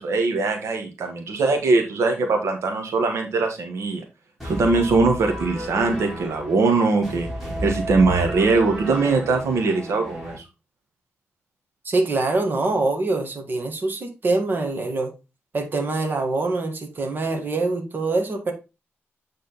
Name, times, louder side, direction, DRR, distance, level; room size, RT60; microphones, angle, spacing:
voice 1, 0.0-4.0 4.4-7.3 7.6-10.3, right 3 dB, 85° right, 1.4 m, -21 dB
sound 1, 4.4-10.4, equal, ahead, 3.2 m, -33 dB
voice 2, 11.8-15.1 15.5-18.5, right 3 dB, 45° right, 1.7 m, -24 dB
8.9 x 3.8 x 4.0 m
wide cardioid pair, 105°, 5 cm